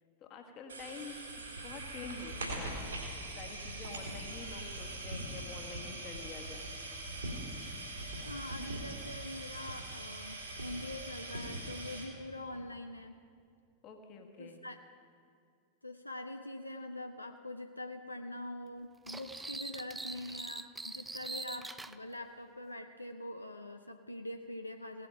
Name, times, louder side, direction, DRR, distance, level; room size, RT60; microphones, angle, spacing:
voice 1, 0.2-2.9 3.4-6.7 12.5-12.6 13.8-14.6, left 4 dB, 35° left, 4 dB, 1.6 m, -48 dB
sound 1, 0.7-12.0, right 2 dB, 75° right, 2.7 m, -42 dB
voice 2, 8.3-13.2 14.4-14.8 15.8-25.1, left 1 dB, 85° left, 6 dB, 0.5 m, -44 dB
sound 2, 19.1-22.0, right 2 dB, 10° right, 0.4 m, -43 dB
17.0 x 8.4 x 5.7 m, 2.3 s
figure-of-eight pair, 90°, 0 cm